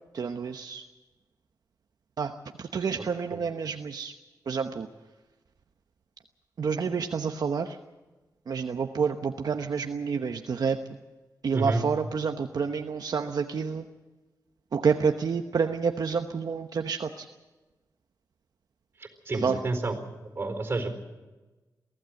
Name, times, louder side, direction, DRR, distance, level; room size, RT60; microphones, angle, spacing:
voice 1, 0.1-0.8 2.2-4.1 4.5-4.9 6.6-7.8 8.5-10.8 11.4-13.9 14.7-17.3 19.3-19.6, right 5 dB, 65° right, 5 dB, 1.0 m, -29 dB
voice 2, 19.0-20.0 20.3-21.0, right 2 dB, 35° right, 6 dB, 4.4 m, -30 dB
23.5 x 16.0 x 7.8 m, 1.2 s
wide cardioid pair, 100°, 7 cm